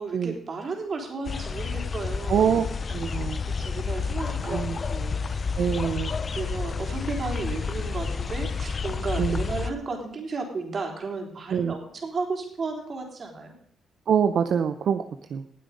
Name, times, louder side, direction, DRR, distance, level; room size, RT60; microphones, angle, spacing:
voice 1, 0.0-2.6 3.6-4.6 4.9-5.2 6.3-13.5, right 4 dB, 45° right, 2 dB, 3.8 m, -33 dB
sound 1, 1.2-9.7, left 5 dB, 40° left, 0.6 m, -30 dB
voice 2, 2.3-3.4 4.5-4.8 5.6-6.1 9.2-9.4 11.5-11.7 14.1-15.4, right 7 dB, 65° right, 9 dB, 0.7 m, -25 dB
19.0 x 7.9 x 5.2 m, 0.69 s
cardioid pair, 95°, 0 cm